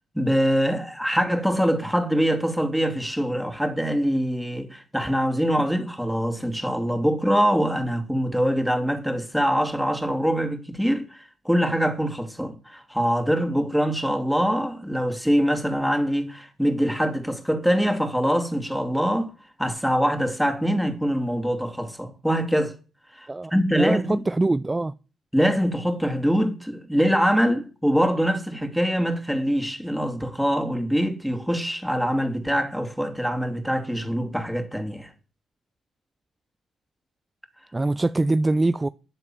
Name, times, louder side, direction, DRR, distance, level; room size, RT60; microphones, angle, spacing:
voice 1, 0.1-19.3 19.6-22.8 23.1-24.2 25.3-35.1, equal, ahead, 2.9 m, -24 dB
voice 2, 23.3-24.9 37.7-38.9, right 2 dB, 20° right, 0.5 m, -23 dB
12.5 x 7.6 x 7.8 m
hypercardioid pair, 45°, 0 cm